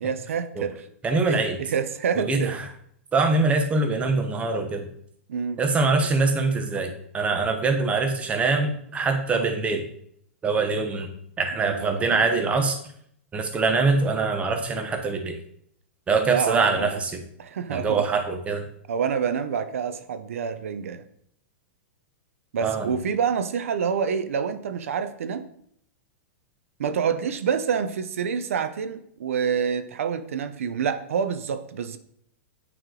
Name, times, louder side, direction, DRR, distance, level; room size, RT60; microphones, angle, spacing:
voice 1, 0.0-0.9 1.3-2.6 5.3-5.6 11.5-12.1 16.3-17.0 17.4-18.1 18.9-21.1 22.5-25.5 26.8-32.0, right 7 dB, 85° right, 11 dB, 0.6 m, -27 dB
voice 2, 1.0-1.6 2.3-2.6 3.1-4.9 5.6-9.9 10.4-11.1 11.4-12.8 13.3-15.4 16.1-17.2 17.7-18.6 22.6-22.9, right 3 dB, 15° right, 5 dB, 0.9 m, -23 dB
9.1 x 3.1 x 3.8 m, 0.68 s
hypercardioid pair, 135°, 7 cm